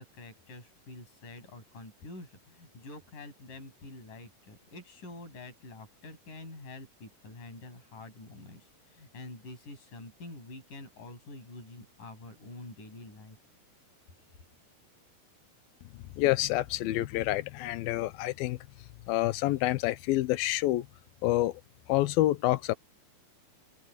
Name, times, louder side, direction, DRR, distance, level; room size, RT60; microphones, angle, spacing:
voice 1, 0.0-13.4, left 2 dB, 55° left, 9.7 m, -47 dB
voice 2, 16.2-18.6 19.1-20.9 21.2-21.6 21.9-22.7, left 16 dB, 85° left, 2.6 m, -27 dB
omnidirectional pair, 4.3 m